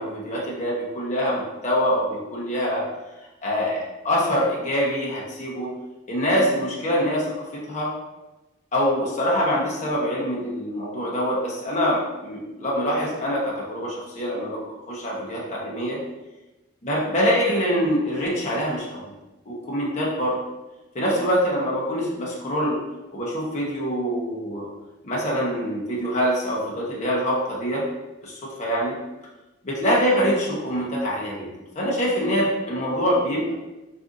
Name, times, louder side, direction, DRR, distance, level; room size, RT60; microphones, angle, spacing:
voice 1, 0.0-2.8 3.4-5.7 6.1-7.9 8.7-16.0 16.8-19.1 19.4-20.4 20.9-22.8 23.1-24.7 25.0-27.8 28.2-28.9 29.6-31.5 31.8-33.5, equal, 35° left, -5 dB, 0.7 m, -24 dB
2.5 x 2.4 x 3.7 m, 1.1 s
head